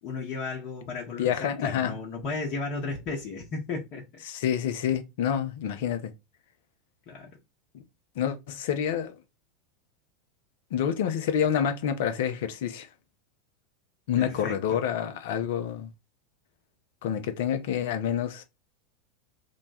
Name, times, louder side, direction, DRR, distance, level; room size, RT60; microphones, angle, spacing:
voice 1, 0.0-4.0 7.1-7.4 14.2-14.8, left 3 dB, 45° left, 0.9 m, -34 dB
voice 2, 1.2-1.9 4.3-6.1 8.2-9.1 10.7-12.9 14.1-15.9 17.0-18.4, left 9 dB, 65° left, 0.6 m, -28 dB
3.0 x 2.2 x 4.1 m
figure-of-eight pair, 85°, 0 cm